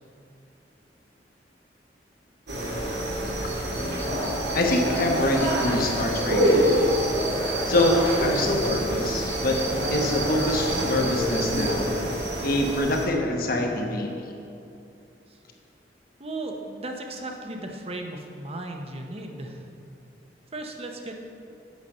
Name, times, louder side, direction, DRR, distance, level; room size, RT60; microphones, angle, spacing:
sound 1, 2.5-13.1, right 1 dB, 85° right, 2.2 m, -26 dB
voice 1, 4.5-6.7 7.7-9.6 9.9-11.9 12.4-14.1, left 1 dB, 55° left, 1 dB, 1.1 m, -25 dB
voice 2, 16.2-19.6 20.5-21.2, right 2 dB, 35° right, 3 dB, 0.9 m, -36 dB
8.1 x 7.0 x 5.5 m, 2.7 s
head